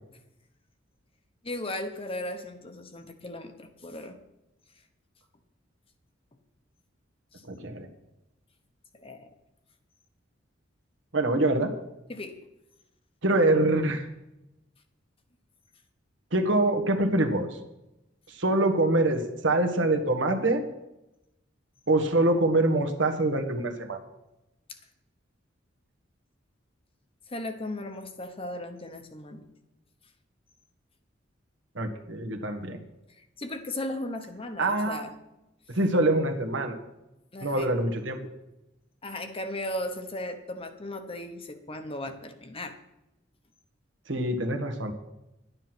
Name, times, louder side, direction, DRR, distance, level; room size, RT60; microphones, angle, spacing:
voice 1, 1.4-4.2 7.3-7.4 8.9-9.3 12.1-12.4 27.3-29.5 33.2-35.1 37.3-37.7 39.0-42.8, left 1 dB, 30° left, 7 dB, 1.1 m, -36 dB
voice 2, 7.5-7.9 11.1-11.7 13.2-14.1 16.3-17.5 18.3-20.6 21.9-24.0 31.7-32.8 34.6-35.0 35.7-36.8 37.4-38.2 44.1-44.9, right 2 dB, 65° right, 4 dB, 1.6 m, -25 dB
11.5 x 9.9 x 6.1 m, 0.92 s
head